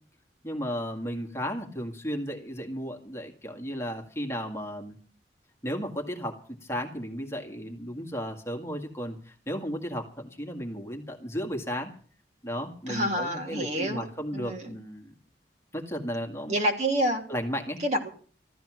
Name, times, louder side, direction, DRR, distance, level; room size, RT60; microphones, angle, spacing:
voice 1, 0.4-5.0 5.6-11.9 12.4-15.1 15.7-16.5 17.3-17.8, equal, 15° left, 3 dB, 2.0 m, -34 dB
voice 2, 12.9-14.1 14.3-14.7 16.5-17.2 17.8-18.1, right 1 dB, 40° right, 2 dB, 2.9 m, -27 dB
14.5 x 13.5 x 6.3 m, 0.43 s
head